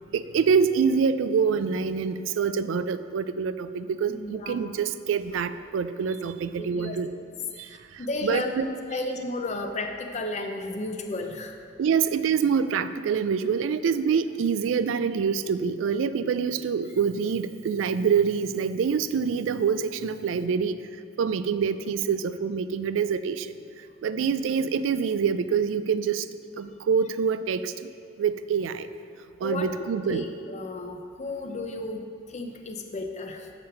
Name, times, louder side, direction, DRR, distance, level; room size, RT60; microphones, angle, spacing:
voice 1, 0.1-7.1 8.2-8.6 11.8-20.8 21.2-23.5 24.0-26.2 26.6-27.7 28.2-28.9 29.4-30.2, right 6 dB, 90° right, 13 dB, 0.3 m, -25 dB
voice 2, 4.1-4.7 6.6-7.0 7.7-11.6 24.1-24.3 29.4-29.7 30.1-33.5, left 2 dB, 35° left, 4 dB, 0.6 m, -33 dB
7.1 x 5.1 x 5.6 m, 2.3 s
head